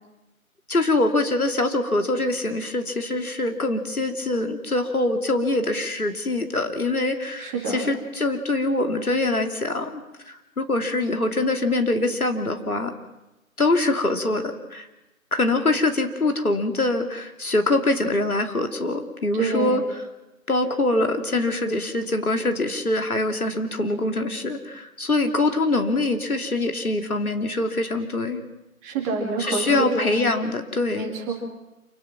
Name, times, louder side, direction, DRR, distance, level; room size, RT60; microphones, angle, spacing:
voice 1, 0.7-12.9 13.6-14.9 15.3-19.8 20.5-28.4 29.4-31.1, left 2 dB, 80° left, 5 dB, 2.9 m, -24 dB
voice 2, 7.4-7.8 19.3-19.8 28.8-30.3 30.9-31.3, right 3 dB, 10° right, -1 dB, 2.4 m, -27 dB
28.0 x 18.0 x 6.0 m, 1.0 s
figure-of-eight pair, 155°, 43 cm